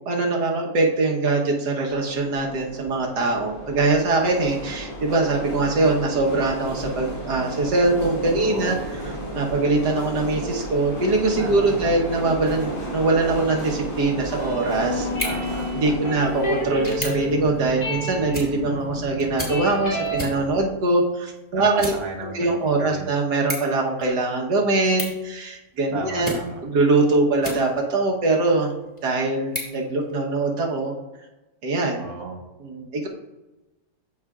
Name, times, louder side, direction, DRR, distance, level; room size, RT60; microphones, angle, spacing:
voice 1, 0.1-8.8 9.4-15.1 15.7-26.3 26.6-28.7 29.0-30.9 31.6-32.0 32.6-33.1, right 2 dB, 85° right, 0 dB, 1.8 m, -22 dB
sound 1, 1.9-20.7, right 1 dB, 35° left, 1.6 m, -34 dB
voice 2, 8.3-8.9 11.4-12.1 15.2-16.2 21.5-23.1 25.9-26.6 32.0-32.4, right 3 dB, 65° right, 2 dB, 1.5 m, -35 dB
sound 2, 14.1-20.2, left 1 dB, 85° left, 3.0 m, -30 dB
sound 3, 15.0-28.0 28.5-30.6, equal, 10° left, 2.1 m, -38 dB
13.5 x 4.7 x 2.4 m, 1.1 s
omnidirectional pair, 1.7 m